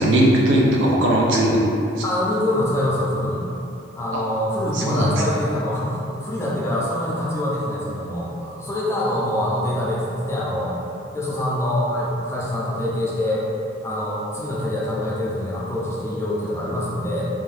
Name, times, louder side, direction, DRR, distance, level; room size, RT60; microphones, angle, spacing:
voice 1, 0.0-1.7 4.1-4.2 4.7-5.1, right 1 dB, 80° right, -3 dB, 0.5 m, -18 dB
voice 2, 2.0-3.4 4.0-10.8 11.1-13.4 13.8-17.3, left 1 dB, 15° left, -6 dB, 0.4 m, -25 dB
2.7 x 2.3 x 3.3 m, 2.7 s
head